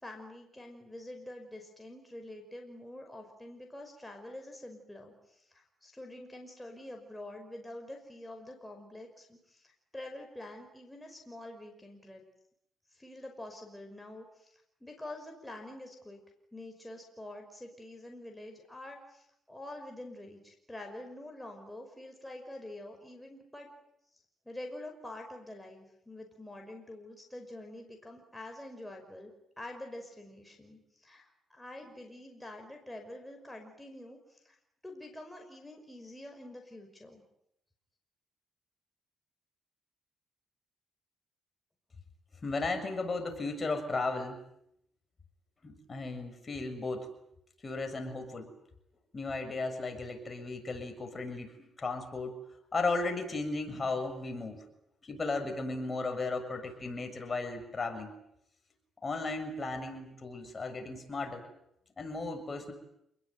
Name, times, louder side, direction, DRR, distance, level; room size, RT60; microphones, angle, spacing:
voice 1, 0.0-12.2 12.9-16.2 16.5-23.7 24.5-29.3 29.6-34.6 34.8-37.2, left 1 dB, 5° left, 2 dB, 5.6 m, -46 dB
voice 2, 42.4-44.4 45.6-47.1 47.6-48.5 49.1-51.5 51.8-52.4 52.7-54.6 55.0-58.1 59.0-61.5 62.0-62.7, left 3 dB, 30° left, 5 dB, 6.9 m, -35 dB
28.5 x 21.0 x 9.5 m, 0.77 s
cardioid pair, 90°, 0 cm